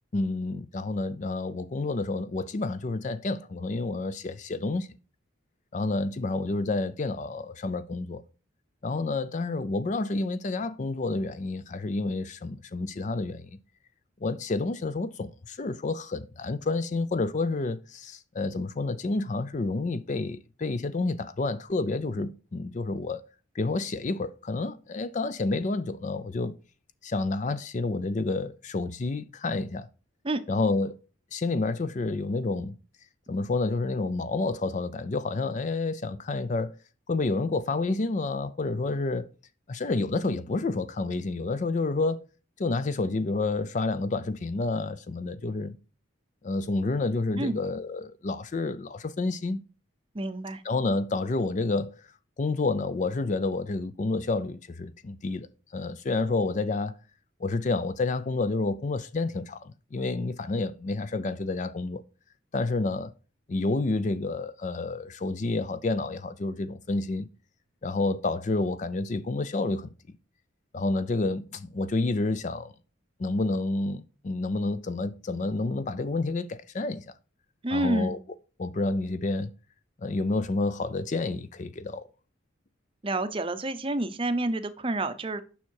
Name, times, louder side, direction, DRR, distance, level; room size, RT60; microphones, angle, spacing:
voice 1, 0.1-4.9 5.7-8.2 8.8-13.5 14.2-23.2 23.5-26.5 27.0-29.9 30.5-31.0 31.3-32.7 33.3-36.7 37.1-39.3 39.7-42.2 42.6-45.7 46.4-49.6 50.6-52.0 52.4-55.5 55.7-56.9 57.4-62.0 62.5-63.1 63.5-67.3 67.8-69.9 70.7-72.7 73.2-77.0 77.7-78.2 78.6-79.5 80.0-82.1, left 3 dB, 35° left, 0.4 m, -29 dB
voice 2, 50.1-50.6 77.6-78.2 83.0-85.4, right 2 dB, 25° right, 0.6 m, -28 dB
7.1 x 5.8 x 4.6 m
head